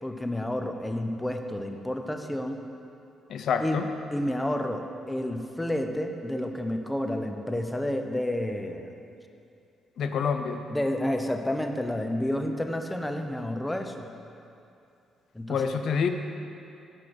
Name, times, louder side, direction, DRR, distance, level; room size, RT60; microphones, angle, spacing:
voice 1, 0.0-2.6 3.6-3.8 4.1-8.9 10.7-14.1 15.3-15.8, left 1 dB, 10° left, 5 dB, 0.5 m, -30 dB
voice 2, 3.3-3.9 10.0-10.6 15.5-16.1, left 6 dB, 65° left, 7 dB, 0.3 m, -27 dB
5.6 x 4.9 x 6.1 m, 2.6 s
cardioid pair, 90°, 0 cm